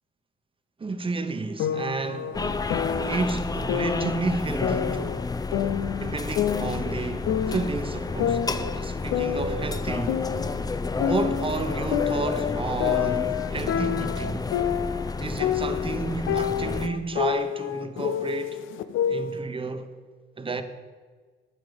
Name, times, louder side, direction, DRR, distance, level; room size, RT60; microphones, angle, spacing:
voice 1, 0.8-2.4 3.1-5.2 6.0-8.4 8.8-10.2 11.0-14.5 15.2-18.6 19.1-19.9 20.4-20.6, right 3 dB, 25° right, 1.0 m, -31 dB
sound 1, 1.6-3.2 3.7-5.3 5.5-7.8 8.2-10.6 11.0-15.1 15.4-19.4, left 9 dB, 85° left, 0.7 m, -28 dB
sound 2, 2.3-16.9, left 3 dB, 20° left, 0.6 m, -30 dB
12.0 x 9.1 x 5.2 m
cardioid pair, 90°, 20 cm